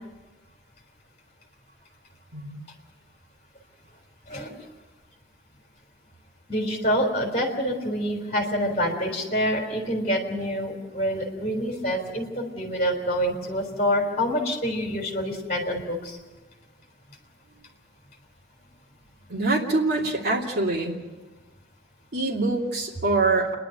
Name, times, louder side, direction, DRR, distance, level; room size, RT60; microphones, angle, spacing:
voice 1, 6.5-16.2, equal, 35° left, 1 dB, 3.5 m, -26 dB
voice 2, 19.3-21.0 22.1-23.5, right 2 dB, 55° right, -2 dB, 2.8 m, -24 dB
29.0 x 11.0 x 9.0 m, 1.2 s
head